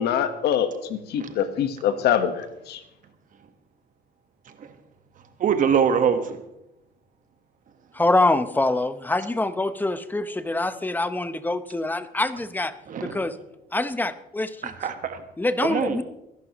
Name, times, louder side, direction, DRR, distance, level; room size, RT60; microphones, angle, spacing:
voice 1, 0.0-2.8, left 9 dB, 75° left, 9 dB, 1.4 m, -24 dB
voice 2, 5.4-6.4 12.9-13.2 14.6-15.2 15.6-16.0, right 7 dB, 50° right, 8 dB, 1.5 m, -23 dB
voice 3, 7.9-12.7 13.0-13.3 13.7-14.7 15.4-16.0, left 2 dB, 10° left, 11 dB, 0.9 m, -25 dB
25.0 x 11.0 x 3.1 m, 0.88 s
cardioid pair, 110°, 17 cm